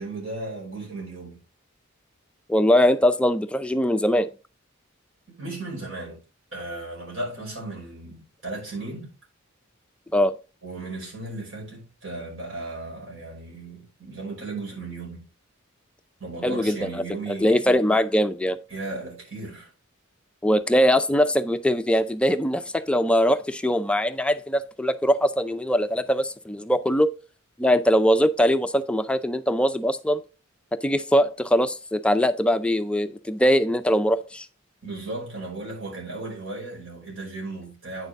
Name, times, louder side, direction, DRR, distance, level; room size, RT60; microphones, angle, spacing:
voice 1, 0.0-1.4 5.3-6.2 6.5-9.1 10.6-15.3 16.2-17.8 18.7-19.7 34.8-38.1, right 2 dB, 70° right, 5.5 m, -35 dB
voice 2, 2.5-4.3 10.1-10.3 16.4-17.0 17.4-18.6 20.4-27.1 27.6-30.2 30.7-34.5, equal, 5° left, 0.4 m, -21 dB
9.0 x 6.6 x 3.5 m
head